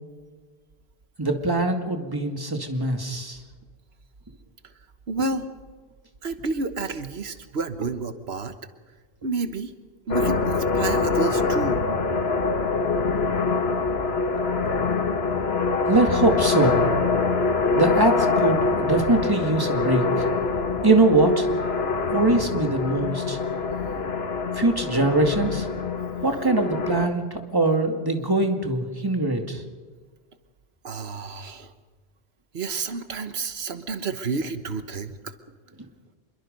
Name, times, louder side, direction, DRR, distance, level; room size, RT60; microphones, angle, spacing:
voice 1, 1.2-3.4 15.9-16.8 17.8-20.3 20.8-21.5 22.1-23.4 24.5-25.7 26.2-29.6, right 2 dB, 20° right, 4 dB, 2.2 m, -22 dB
voice 2, 5.1-5.5 6.2-8.5 9.2-9.7 10.1-11.8 30.8-31.7 32.5-35.3, right 3 dB, 90° right, 9 dB, 1.4 m, -30 dB
sound 1, 10.1-27.1, left 4 dB, 80° left, 1.7 m, -24 dB
26.5 x 22.5 x 5.3 m, 1.4 s
omnidirectional pair, 1.0 m